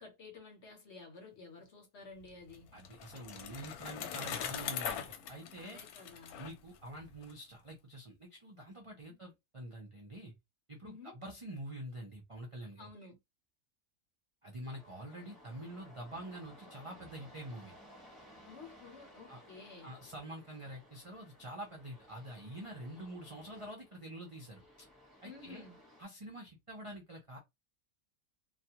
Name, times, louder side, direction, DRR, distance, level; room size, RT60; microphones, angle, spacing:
voice 1, 0.0-2.7 5.6-6.4 9.1-9.2 10.8-11.2 12.8-13.2 18.4-19.9 25.2-25.8, left 4 dB, 55° left, 0.9 m, -52 dB
Bicycle, 2.2-7.3, left 8 dB, 85° left, 1.1 m, -42 dB
voice 2, 2.7-5.8 6.4-10.3 10.7-12.9 14.4-17.7 19.3-19.4 19.8-24.9 25.2-25.6 26.0-27.4, right 1 dB, 50° right, 0.3 m, -46 dB
sound 1, 14.7-26.0, equal, ahead, 1.0 m, -58 dB
2.4 x 2.3 x 2.8 m
omnidirectional pair, 1.5 m